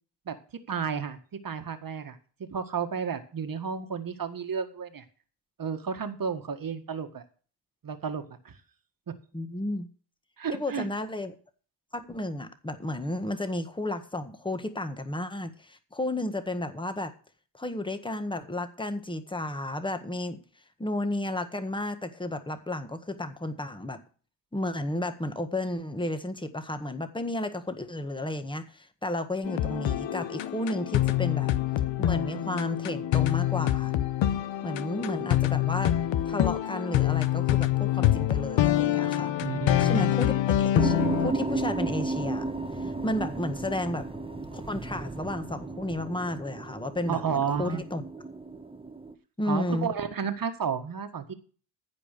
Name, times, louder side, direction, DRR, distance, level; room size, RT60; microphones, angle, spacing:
voice 1, 0.7-1.2 1.4-2.2 2.5-5.0 5.6-7.2 7.8-8.5 9.1-9.2 10.4-10.9 39.4-40.1 47.1-47.8 49.5-51.3, right 6 dB, 50° right, 8 dB, 1.7 m, -32 dB
voice 2, 9.3-9.9 10.5-11.3 11.9-17.1 17.5-20.4 20.8-24.0 24.5-31.5 32.0-33.9 34.6-35.9 36.3-39.3 39.8-42.5 42.8-44.1 44.5-48.0 49.4-49.9, left 1 dB, 10° left, 8 dB, 1.6 m, -32 dB
sound 1, 29.4-41.3, left 12 dB, 90° left, 0.8 m, -26 dB
sound 2, 40.8-49.1, right 3 dB, 10° right, 1.1 m, -34 dB
15.0 x 5.2 x 6.7 m, 0.39 s
cardioid pair, 80°, 44 cm